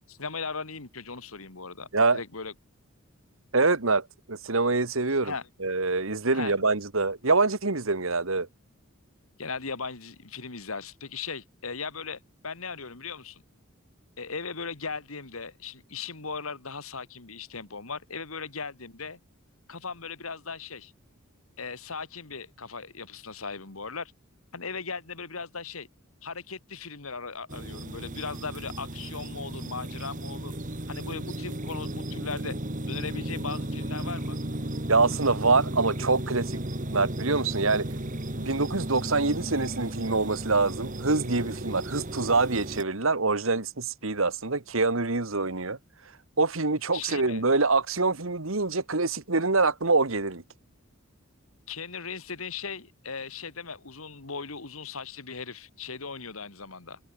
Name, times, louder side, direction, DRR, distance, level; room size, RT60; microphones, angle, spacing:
voice 1, 0.1-2.5 5.2-5.4 6.3-6.5 9.4-13.4 14.2-19.2 19.7-20.9 21.6-24.1 24.5-25.9 26.2-30.6 30.9-32.6 32.9-34.4 46.9-47.4 51.7-57.0, left 5 dB, 85° left, 2.4 m, -38 dB
voice 2, 3.5-5.3 5.6-8.5 34.9-37.9 38.4-45.8 46.4-50.4, right 3 dB, 70° right, 1.8 m, -25 dB
sound 1, 27.5-42.8, right 1 dB, 40° right, 2.3 m, -35 dB
head